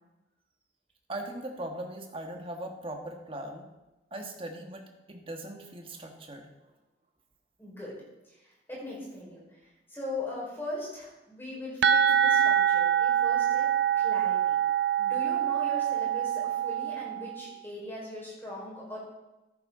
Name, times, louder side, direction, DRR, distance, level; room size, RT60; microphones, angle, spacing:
voice 1, 1.1-3.7 4.1-6.5, right 1 dB, 30° right, 3 dB, 1.5 m, -39 dB
voice 2, 7.6-7.9 8.2-13.7 14.0-14.6 15.0-19.0, left 1 dB, 10° left, -5 dB, 4.6 m, -40 dB
sound 1, 11.8-17.4, right 9 dB, 65° right, 0.5 m, -25 dB
13.5 x 10.5 x 3.8 m, 1.0 s
head